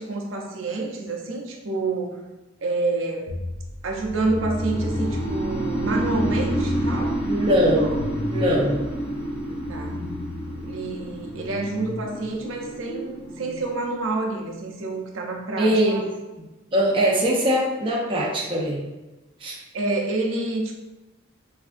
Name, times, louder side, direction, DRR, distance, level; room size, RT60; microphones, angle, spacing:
voice 1, 0.0-2.3 2.6-3.4 3.8-7.2 7.8-8.0 9.7-10.0 10.6-16.1 19.7-20.7, right 2 dB, 75° right, 1 dB, 0.6 m, -28 dB
sound 1, 3.3-13.6, left 1 dB, 90° left, 0.6 m, -34 dB
sound 2, 4.3-14.3, right 1 dB, 30° left, 0.7 m, -29 dB
voice 2, 7.3-7.9 8.3-8.8 15.6-16.0 16.7-18.8 19.4-19.6, equal, 25° right, -4 dB, 0.5 m, -21 dB
3.3 x 2.7 x 2.5 m, 1.1 s
head